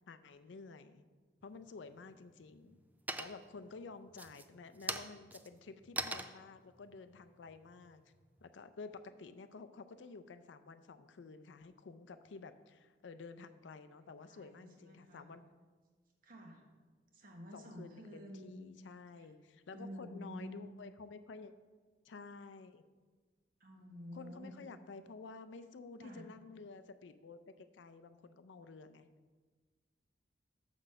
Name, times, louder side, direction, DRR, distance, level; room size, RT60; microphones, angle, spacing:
voice 1, 0.1-1.0 1.4-2.8 3.2-8.0 8.4-15.4 17.5-21.5 22.0-22.8 24.1-29.1, left 4 dB, 80° left, 11 dB, 0.5 m, -51 dB
sound 1, 1.4-2.0 2.4-2.8 3.1-3.6 4.1-8.5, right 2 dB, 10° right, 0.3 m, -43 dB
voice 2, 14.0-15.3 16.2-16.6 17.1-18.5 19.2-19.3 19.7-20.5 23.6-24.5 26.0-26.2, equal, 50° right, 1 dB, 1.4 m, -50 dB
6.2 x 5.3 x 6.6 m, 1.4 s
head